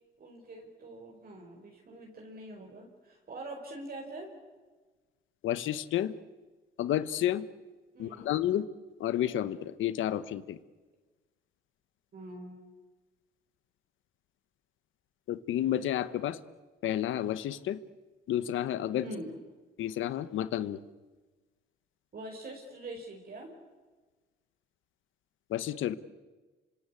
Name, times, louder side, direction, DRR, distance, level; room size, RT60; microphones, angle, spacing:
voice 1, 0.2-4.3 7.9-8.3 12.1-12.6 19.0-19.4 22.1-23.5, right 1 dB, 50° right, 1 dB, 4.9 m, -44 dB
voice 2, 5.4-6.1 6.8-7.4 8.0-8.6 9.0-10.6 15.3-16.4 16.8-17.8 18.3-19.1 19.8-20.8 25.5-25.9, left 11 dB, 80° left, 14 dB, 1.2 m, -30 dB
27.0 x 25.0 x 8.5 m, 1.3 s
cardioid pair, 90°, 20 cm